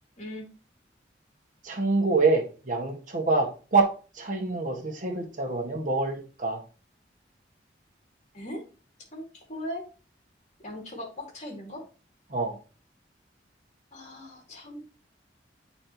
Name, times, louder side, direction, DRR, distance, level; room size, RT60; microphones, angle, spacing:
voice 1, 0.2-0.5 8.3-8.6 9.1-9.8 10.6-11.8 13.9-14.9, left 1 dB, 40° left, 0 dB, 2.5 m, -39 dB
voice 2, 1.6-6.6 12.3-12.5, right 3 dB, 45° right, 1 dB, 1.6 m, -26 dB
8.8 x 4.3 x 2.9 m, 0.35 s
head